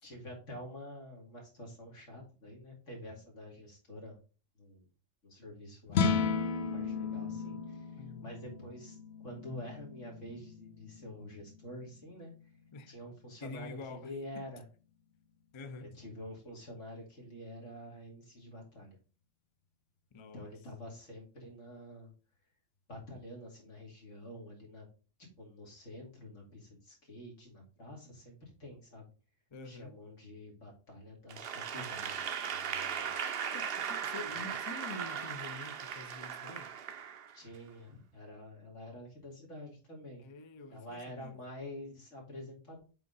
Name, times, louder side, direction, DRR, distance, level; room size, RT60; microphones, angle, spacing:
voice 1, 0.0-4.2 4.5-4.8 5.2-6.4 6.7-9.0 9.2-12.3 12.9-14.6 15.8-19.0 20.3-22.1 22.9-24.9 25.4-29.1 29.6-33.1 34.3-34.5 37.3-40.2 40.7-42.8, left 1 dB, 85° left, 2.9 m, -48 dB
sound 1, 5.9-12.3, left 5 dB, 60° left, 0.9 m, -35 dB
voice 2, 8.0-8.3 12.7-13.0 13.4-14.5 15.5-15.9 20.1-20.6 29.5-29.9 33.5-36.8 40.2-41.4, left 2 dB, 35° left, 0.5 m, -47 dB
Applause / Crowd, 31.3-37.6, right 8 dB, 55° right, 0.8 m, -38 dB
8.0 x 3.7 x 3.9 m
omnidirectional pair, 1.3 m